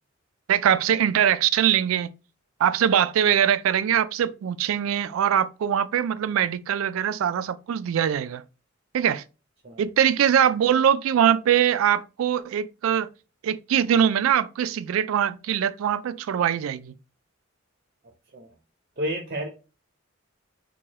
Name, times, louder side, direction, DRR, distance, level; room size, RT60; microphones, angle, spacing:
voice 1, 0.5-2.1 2.6-8.4 8.9-9.2 9.8-13.1 13.4-16.9, right 9 dB, 85° right, 0.3 m, -22 dB
voice 2, 19.0-19.5, equal, 40° right, 0.7 m, -30 dB
4.6 x 2.2 x 2.8 m
head